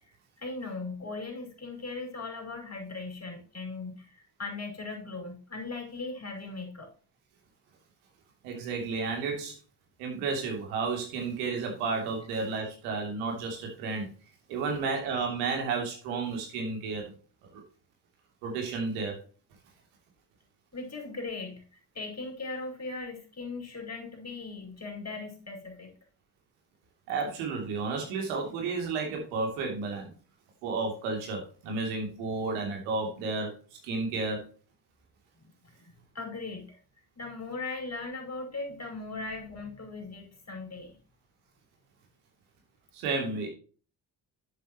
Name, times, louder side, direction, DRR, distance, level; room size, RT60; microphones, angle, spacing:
voice 1, 0.0-6.9 20.7-25.9 35.8-36.8 37.2-41.0, left 3 dB, 30° left, 2 dB, 5.3 m, -39 dB
voice 2, 8.4-9.5 10.0-14.1 14.5-17.1 17.5-17.6 18.4-19.2 27.1-30.1 30.6-33.5 33.8-34.5 42.9-43.5, right 4 dB, 85° right, 1 dB, 3.0 m, -32 dB
11.0 x 7.9 x 3.0 m, 0.38 s
hypercardioid pair, 50°, 49 cm